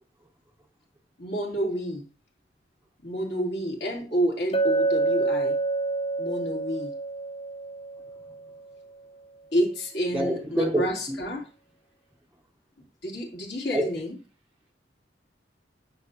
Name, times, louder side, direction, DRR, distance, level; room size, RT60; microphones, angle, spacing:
voice 1, 1.2-2.1 3.0-5.6 6.2-6.9 9.5-11.4 13.0-14.2, equal, 65° left, 3.0 m, -29 dB
Chink clink, 4.5-8.5, right 3 dB, 30° left, 0.6 m, -27 dB
voice 2, 10.1-11.2 13.7-13.9, equal, 10° right, 0.6 m, -26 dB
9.7 x 6.6 x 2.8 m
head